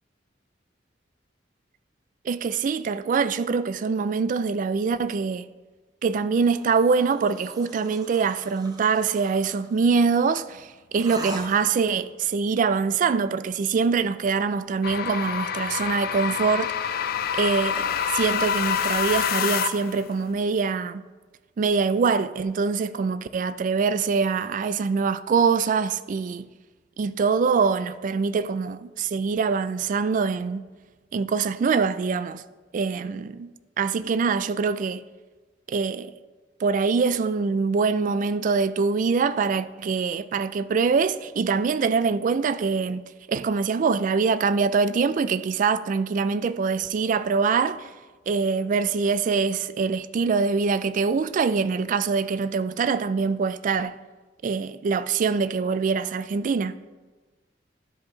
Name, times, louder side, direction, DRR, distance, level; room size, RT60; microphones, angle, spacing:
voice 1, 2.2-5.5 6.0-17.0 17.3-21.1 21.6-26.5 27.0-30.7 31.1-32.4 32.7-35.1 35.7-36.1 36.6-43.0 43.3-47.9 48.3-54.0 54.4-56.7, right 5 dB, 45° right, 0.3 m, -24 dB
sound 1, 6.4-9.8 10.9-12.0, right 1 dB, 20° right, 0.8 m, -42 dB
sound 2, 14.8-20.0, left 8 dB, 55° left, 0.4 m, -27 dB
12.5 x 5.2 x 3.0 m
head